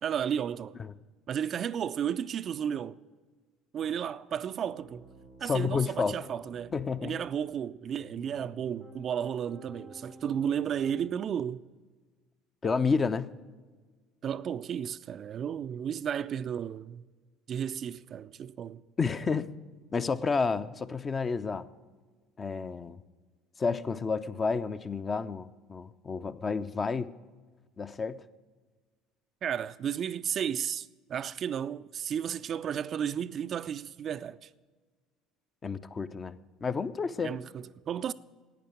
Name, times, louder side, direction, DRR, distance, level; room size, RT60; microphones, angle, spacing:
voice 1, 0.0-0.8 1.3-3.0 3.7-5.0 5.4-6.7 7.0-11.6 14.2-17.0 17.5-18.8 29.4-34.5 37.2-38.1, right 8 dB, 45° right, 0.4 m, -33 dB
Piano, 4.7-5.8 6.2-7.3 8.0-11.2, equal, 90° left, 4.7 m, -52 dB
voice 2, 5.4-6.2 6.7-7.2 12.6-13.3 19.0-19.5 19.9-21.7 22.4-23.0 23.6-27.1 27.8-28.2 35.6-37.4, left 5 dB, 30° left, 0.6 m, -30 dB
12.0 x 9.0 x 8.8 m
figure-of-eight pair, 60°, 0 cm